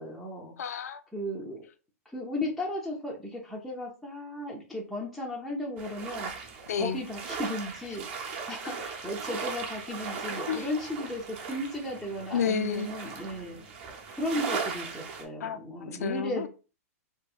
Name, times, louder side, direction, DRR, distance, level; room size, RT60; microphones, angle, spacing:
voice 1, 0.0-0.5 1.1-1.7 2.1-6.3 6.7-13.6 14.1-16.5, left 1 dB, ahead, 0.4 m, -35 dB
voice 2, 0.6-1.0 6.7-7.0 10.5-10.6 12.3-12.9 15.4-15.6 15.9-16.5, left 7 dB, 85° left, 0.4 m, -30 dB
sound 1, 5.8-15.2, right 5 dB, 45° right, 0.7 m, -38 dB
2.7 x 2.7 x 2.3 m
hypercardioid pair, 155°, 8 cm